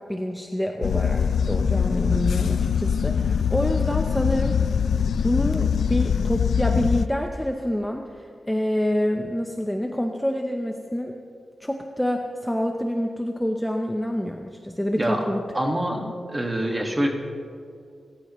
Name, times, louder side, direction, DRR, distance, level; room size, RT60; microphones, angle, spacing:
voice 1, 0.1-4.6 5.2-11.2 11.6-15.4 16.0-16.1, equal, 5° left, 3 dB, 0.7 m, -27 dB
sound 1, 0.8-7.1, left 7 dB, 80° left, 0.5 m, -23 dB
voice 2, 14.9-15.2 15.5-16.0 16.3-17.1, right 1 dB, 15° right, 1 dB, 1.8 m, -25 dB
28.5 x 14.5 x 3.1 m, 2.3 s
wide cardioid pair, 165°, 0 cm